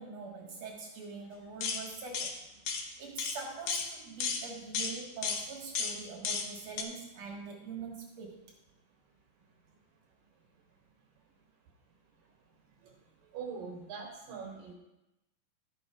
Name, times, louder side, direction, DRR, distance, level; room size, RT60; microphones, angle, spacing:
voice 1, 0.0-2.4 3.0-8.4, right 4 dB, 55° right, 0 dB, 2.3 m, -44 dB
sound 1, 1.6-1.8 2.1-2.3 2.7-2.8 3.2-3.4 3.7-3.9 4.2-4.4 4.7-4.9 5.2-5.4 5.8-5.9 6.2-6.5 6.8-6.9, left 5 dB, 75° left, 1.6 m, -33 dB
voice 2, 13.3-14.7, right 5 dB, 70° right, 1 dB, 2.7 m, -42 dB
12.0 x 7.1 x 4.9 m, 0.95 s
omnidirectional pair, 4.5 m